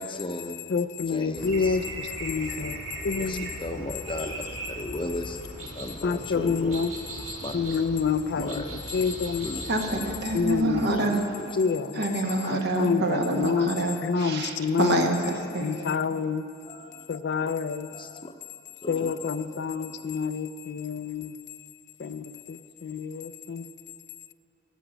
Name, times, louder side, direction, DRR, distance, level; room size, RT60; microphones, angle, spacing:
voice 1, 0.0-0.5 1.1-1.8 3.2-4.3 4.7-5.4 5.7-6.9 7.4-7.5 8.3-8.8 9.4-9.6 9.9-10.2 10.9-11.5 16.7-17.1 17.9-18.3 18.8-20.0, left 1 dB, 25° left, 6 dB, 0.7 m, -36 dB
voice 2, 0.7-2.8 3.0-3.5 6.0-6.9 7.5-8.6 8.9-9.5 10.3-11.1 11.6-12.0 12.4-13.7 14.0-15.1 15.6-16.4 17.1-17.9 18.9-21.4 22.0-23.6, left 5 dB, 55° left, 12 dB, 0.4 m, -28 dB
sound 1, 1.3-10.8, right 1 dB, 80° right, 2.2 m, -39 dB
voice 3, 9.7-11.6 11.9-15.7, right 2 dB, 55° right, 3 dB, 1.4 m, -27 dB
13.5 x 7.2 x 8.9 m, 2.5 s
head